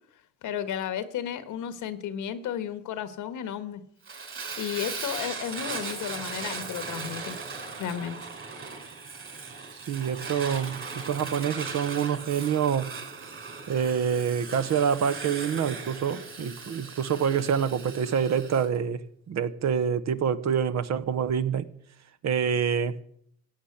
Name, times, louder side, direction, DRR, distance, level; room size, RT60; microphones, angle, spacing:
voice 1, 0.4-3.8 4.6-7.4 7.8-8.2, left 9 dB, 85° left, 1.5 m, -33 dB
Fire, 4.1-18.7, right 4 dB, 45° right, 5.0 m, -38 dB
voice 2, 9.7-12.9 13.7-21.7 22.2-22.9, right 7 dB, 60° right, 1.1 m, -27 dB
15.5 x 8.8 x 8.0 m
cardioid pair, 90°, 30 cm